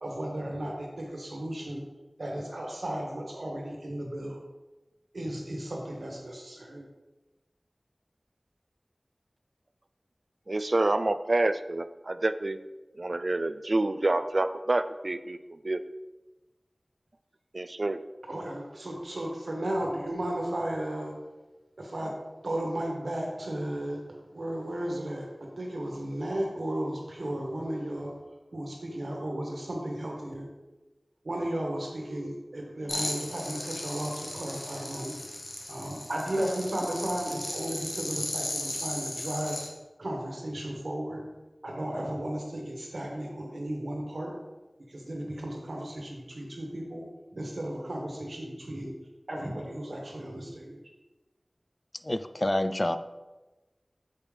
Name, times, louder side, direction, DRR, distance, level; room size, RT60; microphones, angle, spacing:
voice 1, 0.0-1.8 2.2-4.4 5.1-6.8 18.3-21.2 21.8-22.1 22.4-24.0 24.3-28.2 28.5-30.5 31.2-35.1 35.7-39.6 40.0-41.2 41.6-44.3 44.9-47.0 47.3-48.9 49.3-50.8, right 1 dB, 90° right, -1 dB, 1.3 m, -34 dB
voice 2, 10.5-12.6 13.0-15.8 17.5-18.0, right 2 dB, 65° right, 12 dB, 0.3 m, -28 dB
sound 1, 32.9-39.7, left 1 dB, 65° left, 1.0 m, -36 dB
voice 3, 52.0-53.0, left 1 dB, 35° left, 10 dB, 0.3 m, -27 dB
6.4 x 5.2 x 3.4 m, 1.1 s
wide cardioid pair, 40°, 0 cm